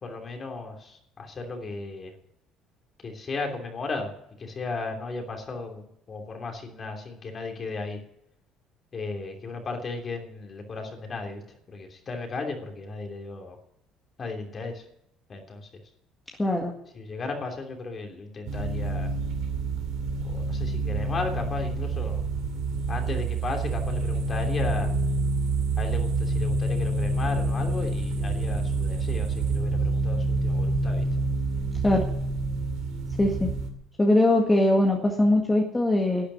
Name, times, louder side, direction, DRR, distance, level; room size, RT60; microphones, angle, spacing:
voice 1, 0.0-2.1 3.0-4.1 4.4-8.0 8.9-11.4 11.7-13.6 14.2-14.8 15.3-15.7 16.9-19.1 20.2-22.2 22.9-24.9 25.8-31.1, left 3 dB, 35° left, 3 dB, 3.0 m, -35 dB
voice 2, 16.4-16.7 31.8-32.0 33.2-33.5 34.0-36.3, left 1 dB, 15° left, 0 dB, 1.9 m, -21 dB
sound 1, 18.5-33.7, right 2 dB, 80° right, 2.6 m, -27 dB
12.0 x 8.6 x 9.8 m, 0.78 s
cardioid pair, 110°, 0 cm